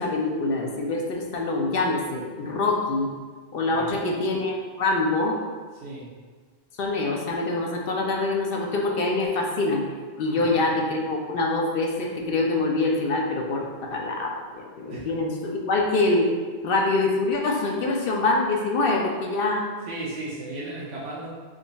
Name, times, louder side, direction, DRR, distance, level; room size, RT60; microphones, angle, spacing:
voice 1, 0.0-3.1 3.5-5.4 6.8-9.8 10.2-13.6 13.9-16.3 16.6-19.6, left 2 dB, 65° left, 0 dB, 0.7 m, -25 dB
voice 2, 3.7-4.3 5.7-6.1 10.3-10.7 14.9-15.1 19.8-21.3, right 2 dB, 70° right, -6 dB, 0.9 m, -36 dB
3.7 x 2.3 x 3.9 m, 1.5 s
omnidirectional pair, 1.1 m